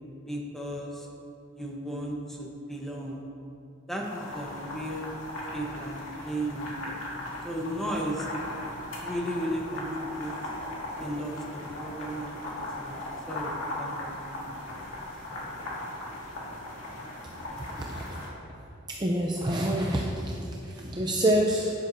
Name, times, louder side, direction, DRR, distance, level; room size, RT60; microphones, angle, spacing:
voice 1, 0.2-1.1 1.5-3.2 3.9-5.1 5.5-7.0 7.4-8.3 9.0-10.3 11.0-13.0 13.3-14.4, right 1 dB, ahead, -2 dB, 1.1 m, -35 dB
sound 1, 4.0-18.3, left 1 dB, 75° left, 2.1 m, -38 dB
voice 2, 17.8-18.1 18.9-21.7, right 1 dB, 20° right, -2 dB, 0.6 m, -27 dB
11.5 x 10.0 x 2.7 m, 2.6 s
head